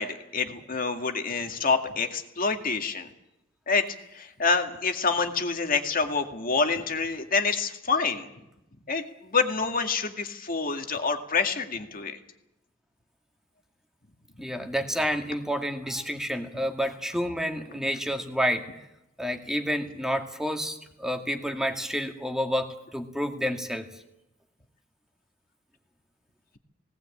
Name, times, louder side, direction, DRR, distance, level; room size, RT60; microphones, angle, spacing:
voice 1, 0.0-3.1 3.7-3.9 4.1-8.3 8.9-12.2, left 4 dB, 45° left, 5 dB, 2.2 m, -27 dB
voice 2, 14.4-18.7 19.2-23.9, equal, 5° right, 4 dB, 2.0 m, -29 dB
18.5 x 18.5 x 8.6 m, 0.87 s
head